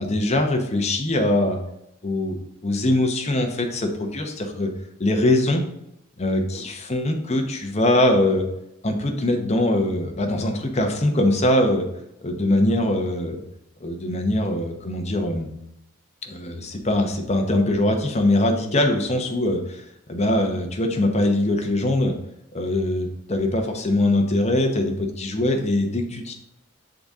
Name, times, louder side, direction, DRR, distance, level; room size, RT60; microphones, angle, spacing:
voice 1, 0.0-1.6 2.0-2.4 2.6-4.7 5.0-5.6 6.2-8.4 8.8-11.8 12.2-13.4 13.8-15.5 16.2-22.1 22.5-26.3, left 1 dB, 30° left, 3 dB, 0.8 m, -22 dB
6.8 x 3.9 x 3.6 m, 0.83 s
head